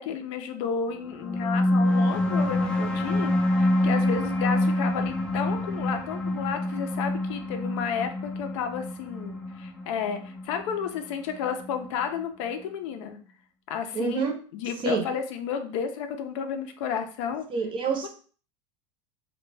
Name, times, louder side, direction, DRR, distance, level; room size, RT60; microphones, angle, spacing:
voice 1, 0.0-13.2 13.7-17.5 18.0-18.1, left 7 dB, 70° left, 7 dB, 0.5 m, -32 dB
sound 1, 1.1-12.0, left 1 dB, 5° left, 0.4 m, -26 dB
voice 2, 13.9-14.3 14.8-15.0 17.5-18.1, right 4 dB, 30° right, 3 dB, 0.6 m, -27 dB
2.2 x 2.2 x 3.2 m, 0.42 s
supercardioid pair, 135°, 16 cm